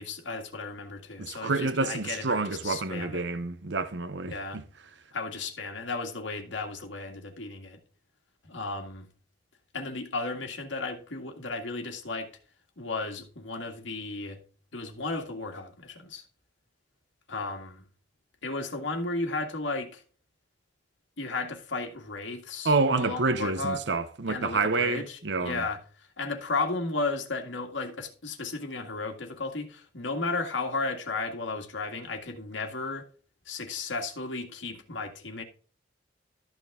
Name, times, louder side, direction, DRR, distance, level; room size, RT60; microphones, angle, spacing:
voice 1, 0.0-3.2 4.3-4.6 5.1-7.8 8.4-9.1 9.7-12.3 12.8-14.4 14.7-16.2 17.3-17.8 18.4-20.0 21.2-23.8 24.3-33.1 33.5-35.4, left 3 dB, 80° left, 1.9 m, -34 dB
voice 2, 1.2-4.6 22.6-25.6, right 3 dB, 65° right, 0.8 m, -28 dB
13.0 x 6.2 x 3.6 m
head